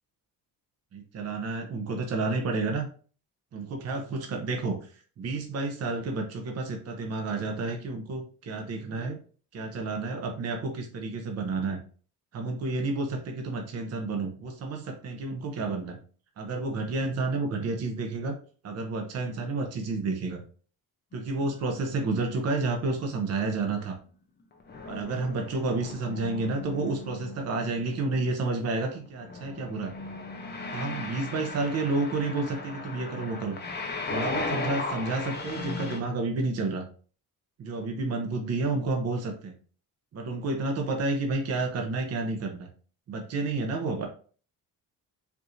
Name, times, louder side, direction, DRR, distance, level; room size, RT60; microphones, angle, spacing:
voice 1, 0.9-2.9 3.5-4.8 5.2-9.2 9.5-11.8 12.3-16.0 16.4-18.3 18.6-20.4 21.1-24.0 24.9-29.9 30.7-33.6 34.1-36.8 37.6-39.5 40.1-42.7 43.1-44.1, right 3 dB, 45° right, 3 dB, 0.7 m, -30 dB
sound 1, 21.1-23.0 24.6-36.0, left 3 dB, 30° left, 0.6 m, -37 dB
4.6 x 2.5 x 2.6 m, 0.41 s
cardioid pair, 130°, 35 cm